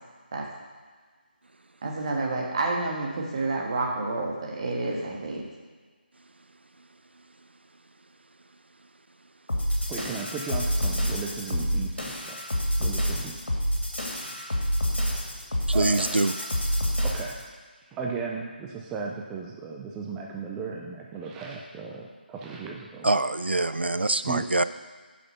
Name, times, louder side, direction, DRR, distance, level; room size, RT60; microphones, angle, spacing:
voice 1, 1.8-5.4, right 3 dB, 35° right, -1 dB, 1.5 m, -29 dB
sound 1, 9.5-17.4, equal, 75° left, 2.2 m, -28 dB
voice 2, 9.9-12.4 12.8-13.4 15.7-16.0 17.0-17.5 17.9-23.3 24.3-24.6, right 5 dB, 5° right, 0 dB, 0.3 m, -35 dB
voice 3, 15.7-16.3 23.0-24.6, right 2 dB, 80° right, 13 dB, 0.5 m, -24 dB
8.0 x 5.9 x 5.4 m, 1.5 s
figure-of-eight pair, 160°, 6 cm